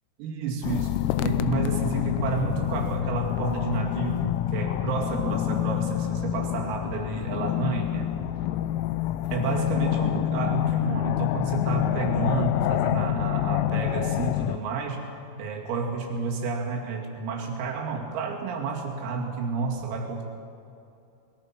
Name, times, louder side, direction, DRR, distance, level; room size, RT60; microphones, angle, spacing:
voice 1, 0.2-8.1 9.3-15.0 15.4-20.3, right 4 dB, 80° right, 0 dB, 5.1 m, -30 dB
sound 1, 0.6-14.6, left 12 dB, 85° left, 3.3 m, -27 dB
25.0 x 21.0 x 6.1 m, 2.7 s
omnidirectional pair, 5.9 m